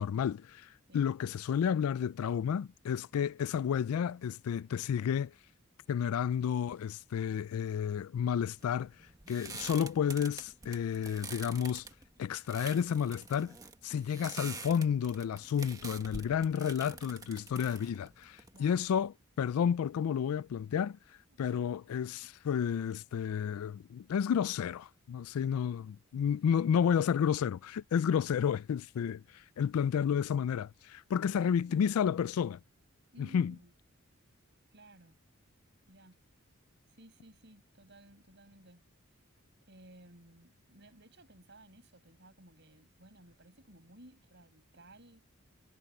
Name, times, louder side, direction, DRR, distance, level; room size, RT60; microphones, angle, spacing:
voice 1, 0.0-5.3 5.9-8.9 9.3-11.9 12.2-13.6 13.8-21.0 21.4-32.6 33.3-33.5, left 8 dB, 85° left, 0.3 m, -31 dB
sound 1, 8.6-19.0, right 4 dB, 15° right, 1.5 m, -47 dB
voice 2, 18.5-18.9 21.3-21.7 22.2-22.3 26.4-26.7 31.3-31.9 33.1-33.7 34.7-35.2 35.9-36.2 37.0-38.8 39.7-45.2, right 1 dB, 55° right, 5.9 m, -57 dB
head